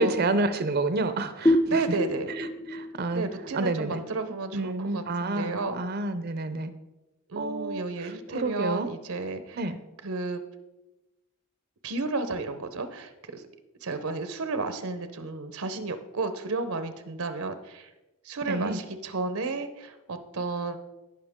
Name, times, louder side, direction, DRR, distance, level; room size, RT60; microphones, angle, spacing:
voice 1, 0.0-2.0 2.4-3.3 3.5-4.0 4.5-6.7 7.4-8.9 9.6-9.8 18.5-18.8, right 2 dB, 45° right, 12 dB, 0.6 m, -29 dB
sound 1, 1.4-4.8, equal, 15° left, 0.4 m, -28 dB
voice 2, 1.7-2.3 3.1-5.8 7.3-9.6 10.0-10.4 11.8-13.4 13.8-17.9 18.2-20.8, right 3 dB, 80° right, 10 dB, 0.8 m, -32 dB
17.0 x 5.8 x 3.6 m, 1.0 s
head